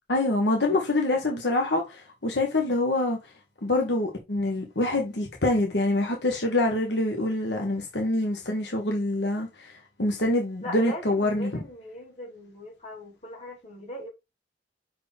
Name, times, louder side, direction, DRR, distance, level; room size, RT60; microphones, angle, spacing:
voice 1, 0.1-3.2 3.6-9.7 10.0-11.6, left 2 dB, 75° left, 1.4 m, -25 dB
voice 2, 10.6-14.1, left 1 dB, 35° left, 2.6 m, -39 dB
5.7 x 4.7 x 3.5 m
head